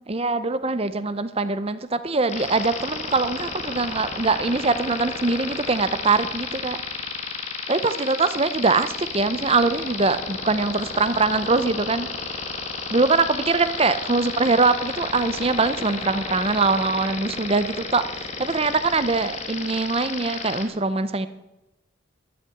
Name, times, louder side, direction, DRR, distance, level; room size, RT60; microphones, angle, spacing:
voice 1, 0.1-7.1 7.7-12.4 12.9-21.3, right 3 dB, 30° right, 12 dB, 0.7 m, -23 dB
sound 1, 2.3-20.7, left 4 dB, 35° left, 1.8 m, -32 dB
13.0 x 9.7 x 9.2 m, 0.95 s
head